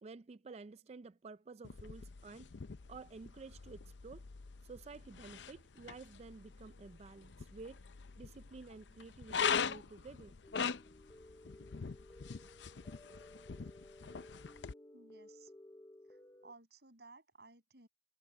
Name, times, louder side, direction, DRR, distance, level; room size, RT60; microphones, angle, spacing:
voice 1, 0.0-2.5 2.9-4.3 4.6-7.8 8.2-10.3, right 4 dB, 35° right, 0.4 m, -52 dB
sound 1, 1.6-14.7, left 6 dB, 85° left, 0.6 m, -42 dB
sound 2, 10.4-16.5, left 1 dB, 20° left, 0.6 m, -57 dB
voice 2, 14.9-15.5 16.1-17.9, right 3 dB, 65° right, 7.0 m, -59 dB
head